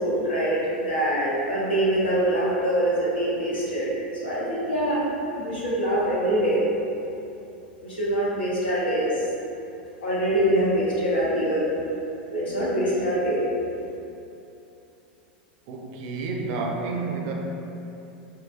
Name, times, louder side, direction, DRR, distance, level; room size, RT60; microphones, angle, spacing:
voice 1, 0.0-3.9 4.2-5.0 5.4-6.6 7.8-9.2 10.0-11.7 12.3-13.4, right 1 dB, 85° left, -8 dB, 0.8 m, -24 dB
voice 2, 15.7-17.3, right 3 dB, 55° right, 0 dB, 0.4 m, -30 dB
2.6 x 2.4 x 2.4 m, 2.8 s
hypercardioid pair, 95°, 5 cm